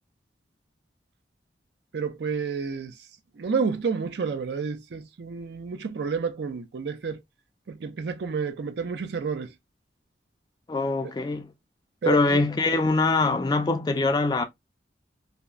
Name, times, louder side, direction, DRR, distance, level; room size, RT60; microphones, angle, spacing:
voice 1, 1.9-2.9 3.4-7.2 7.7-9.5 12.0-12.4, right 5 dB, 70° right, 0.4 m, -30 dB
voice 2, 10.7-11.5 12.0-14.4, left 3 dB, 25° left, 0.3 m, -23 dB
2.7 x 2.1 x 2.3 m
head